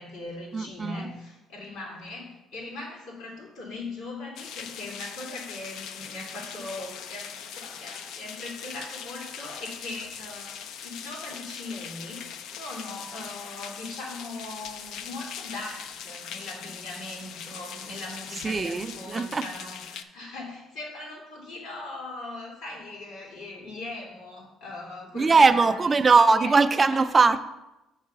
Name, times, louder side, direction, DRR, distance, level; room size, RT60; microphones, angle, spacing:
voice 1, 0.0-26.0 26.4-26.5 26.9-27.0, left 2 dB, 90° left, -3 dB, 2.6 m, -40 dB
voice 2, 0.5-1.1 18.4-19.5 25.1-27.4, right 4 dB, 25° right, 10 dB, 0.4 m, -20 dB
sound 1, 4.4-20.0, left 8 dB, 70° left, 0.4 m, -41 dB
6.5 x 4.7 x 5.8 m, 0.98 s
cardioid pair, 140°, 0 cm